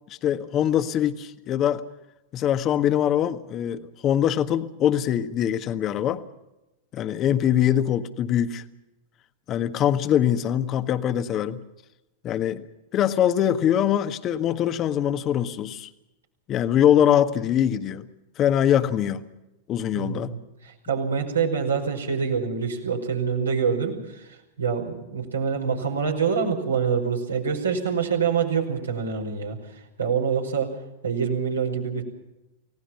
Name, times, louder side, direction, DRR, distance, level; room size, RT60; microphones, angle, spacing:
voice 1, 0.1-1.8 2.3-6.2 6.9-8.6 9.5-11.6 12.2-12.6 12.9-15.9 16.5-18.1 18.4-19.2 19.7-20.3, left 10 dB, 30° left, 10 dB, 1.5 m, -23 dB
voice 2, 19.9-20.4 20.6-30.8 31.0-32.0, right 6 dB, 75° right, 1 dB, 5.2 m, -26 dB
29.5 x 18.0 x 5.8 m, 0.94 s
figure-of-eight pair, 90°, 0 cm